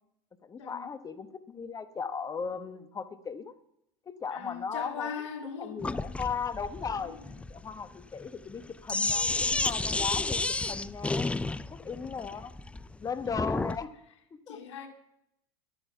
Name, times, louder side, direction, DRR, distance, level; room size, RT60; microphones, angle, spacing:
voice 1, 0.4-3.5 4.1-5.1 5.6-7.2 7.5-11.3 11.7-12.5 13.0-13.9 14.5-14.6, left 6 dB, 25° left, 11 dB, 1.2 m, -37 dB
voice 2, 4.3-5.8 6.8-7.3 11.9-12.1 13.0-13.1 14.5-14.9, left 7 dB, 85° left, 5 dB, 2.1 m, -40 dB
Sink (filling or washing), 5.8-13.8, left 3 dB, 10° left, 0.4 m, -31 dB
11.5 x 10.5 x 5.7 m, 0.78 s
hypercardioid pair, 100°, 15 cm